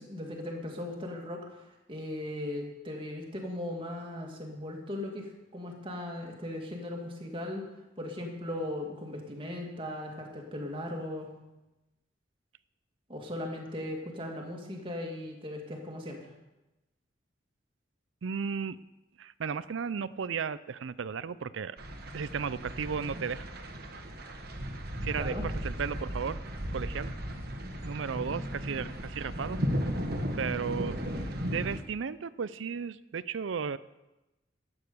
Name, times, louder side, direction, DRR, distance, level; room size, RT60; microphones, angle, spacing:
voice 1, 0.0-7.6 8.0-11.3 13.1-16.3 25.1-25.5, left 1 dB, 25° right, 0 dB, 2.2 m, -38 dB
voice 2, 18.2-18.8 19.2-21.8 22.1-23.5 25.0-26.4 26.7-27.1 27.9-29.6 30.4-33.8, right 6 dB, 90° right, 17 dB, 0.5 m, -34 dB
sound 1, 21.8-31.8, equal, 55° right, 1.4 m, -35 dB
12.5 x 8.9 x 6.9 m, 1.0 s
head